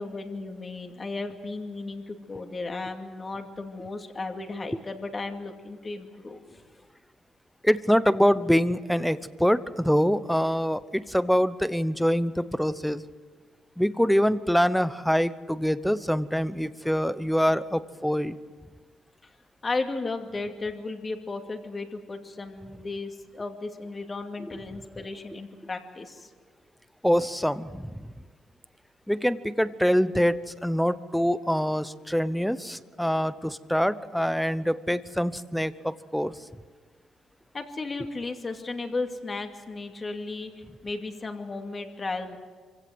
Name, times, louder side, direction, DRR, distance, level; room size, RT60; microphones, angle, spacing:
voice 1, 0.0-6.6 19.2-19.3 19.6-26.3 37.5-42.4, left 3 dB, 30° left, 5 dB, 2.5 m, -35 dB
voice 2, 7.6-13.0 13.8-18.4 27.0-28.1 29.1-36.3, equal, ahead, 15 dB, 0.9 m, -25 dB
25.0 x 16.5 x 7.9 m, 1.5 s
cardioid pair, 90°, 0 cm